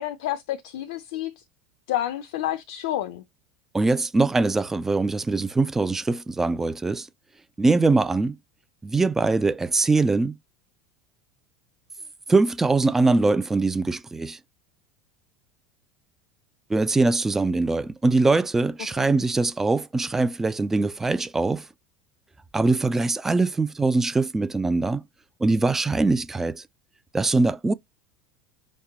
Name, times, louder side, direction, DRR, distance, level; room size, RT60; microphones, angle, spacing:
voice 1, 0.0-1.3 1.9-3.2 19.0-19.1, left 13 dB, 60° left, 0.5 m, -29 dB
voice 2, 3.7-7.1 7.6-8.4 8.8-10.4 12.3-14.4 16.7-21.7 22.5-25.0 25.4-26.6 27.1-27.7, right 3 dB, 10° right, 0.3 m, -22 dB
5.2 x 2.1 x 4.0 m
figure-of-eight pair, 75°, 3 cm